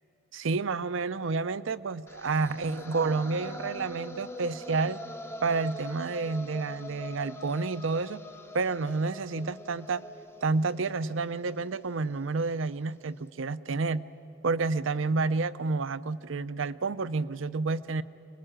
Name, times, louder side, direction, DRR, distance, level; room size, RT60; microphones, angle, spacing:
voice 1, 0.3-5.0 5.4-8.2 8.5-10.1 10.4-14.0 14.4-18.0, right 4 dB, 75° right, 15 dB, 0.6 m, -29 dB
sound 1, 2.1-12.1, left 1 dB, 10° left, 0.6 m, -44 dB
25.0 x 20.0 x 8.9 m, 2.8 s
head